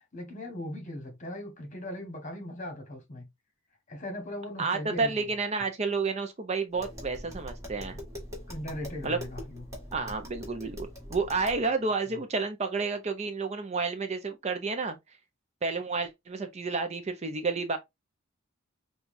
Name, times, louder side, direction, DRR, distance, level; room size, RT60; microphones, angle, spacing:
voice 1, 0.1-3.3 3.9-5.2 8.5-9.6, left 1 dB, 35° left, 1.3 m, -39 dB
voice 2, 4.6-8.0 9.0-9.2 9.9-15.0 15.6-17.8, right 4 dB, 30° right, 0.5 m, -30 dB
Tap, 6.7-11.7, equal, 15° right, 1.7 m, -42 dB
5.6 x 2.3 x 2.5 m
head